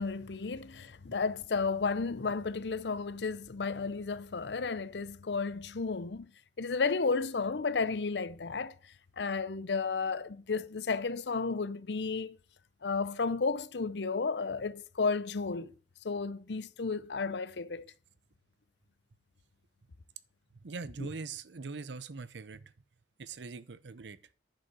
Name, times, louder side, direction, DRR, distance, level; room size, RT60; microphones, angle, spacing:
voice 1, 0.0-6.3 6.6-8.7 9.2-12.4 12.8-15.7 16.0-17.9 21.0-21.1, left 4 dB, 80° left, 0.7 m, -33 dB
voice 2, 20.6-22.6 23.2-24.2, right 4 dB, 85° right, 0.7 m, -42 dB
10.0 x 5.4 x 7.5 m
head